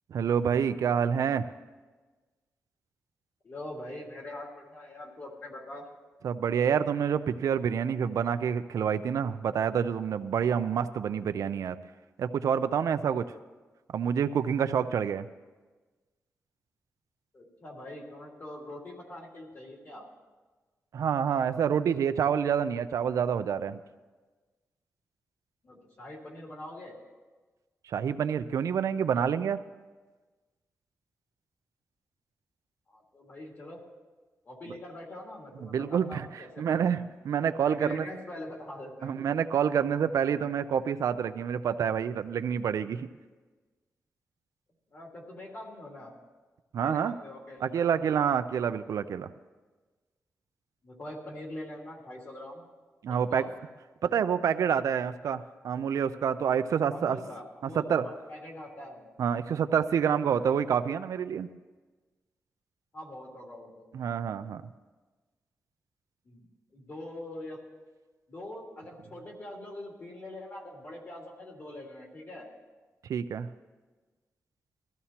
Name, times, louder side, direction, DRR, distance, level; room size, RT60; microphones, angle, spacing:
voice 1, 0.1-1.5 6.2-11.8 12.2-13.3 13.9-15.3 20.9-23.8 27.9-29.6 35.6-37.0 37.2-38.1 39.0-43.1 46.7-47.1 47.6-49.3 53.0-53.5 54.0-57.2 57.8-58.0 59.2-61.5 63.9-64.6 73.1-73.5, right 7 dB, 80° right, 10 dB, 0.5 m, -27 dB
voice 2, 3.4-5.9 17.3-20.1 25.6-27.0 32.9-33.8 34.4-37.1 37.6-39.1 44.9-46.2 46.8-48.2 50.8-52.7 53.1-53.5 56.9-59.1 62.9-63.9 66.2-66.5 66.7-67.6 68.3-72.5, left 1 dB, 45° left, -2 dB, 3.0 m, -43 dB
21.0 x 14.0 x 2.9 m, 1.3 s
wide cardioid pair, 160°, 6 cm